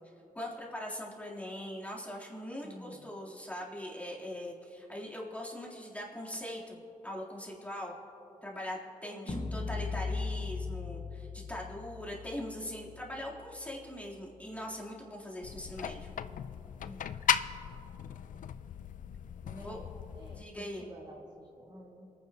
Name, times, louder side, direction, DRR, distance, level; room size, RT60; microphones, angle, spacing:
voice 1, 0.4-7.9 8.4-16.1 19.5-19.8 20.3-20.9, left 1 dB, 10° left, -5 dB, 3.5 m, -41 dB
voice 2, 2.6-3.2 9.2-9.7 16.8-17.1 19.4-22.1, equal, 30° right, -3 dB, 2.3 m, -49 dB
sound 1, 9.3-15.3, left 4 dB, 40° left, 1.1 m, -40 dB
sound 2, 15.4-20.4, left 9 dB, 70° left, 0.4 m, -36 dB
27.5 x 9.7 x 3.0 m, 2.9 s
supercardioid pair, 45°, 14 cm